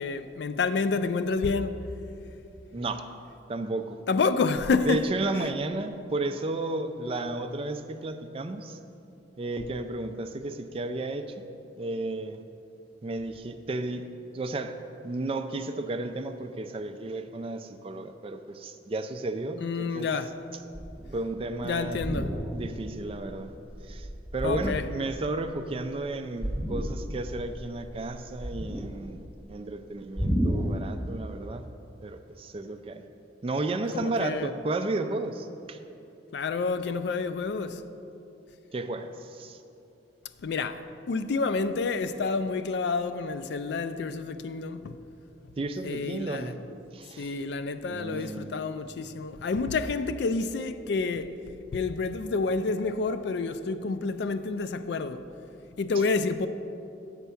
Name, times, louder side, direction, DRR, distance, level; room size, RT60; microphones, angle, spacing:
voice 1, 0.0-1.8 4.1-5.0 5.3-5.5 19.6-20.4 21.6-22.4 24.4-24.8 33.9-34.5 36.3-37.8 40.4-45.0 45.8-46.5 47.2-51.3 51.7-55.3 55.8-56.5, left 4 dB, 60° left, 0.3 m, -29 dB
voice 2, 2.7-3.1 3.5-4.0 4.8-8.8 9.4-11.5 11.8-12.4 13.0-14.1 14.3-20.1 21.1-22.0 22.5-23.6 23.8-24.1 24.3-31.6 32.0-33.0 33.4-35.8 38.7-39.6 45.6-46.6 46.9-47.3 47.9-48.5, right 2 dB, 30° right, 0.3 m, -33 dB
sound 1, 20.7-21.2 21.8-22.8 23.2-23.4 23.7-25.0 26.4-27.2 27.5-29.1 30.2-30.7, equal, 5° right, 1.2 m, -31 dB
8.3 x 4.5 x 6.9 m
head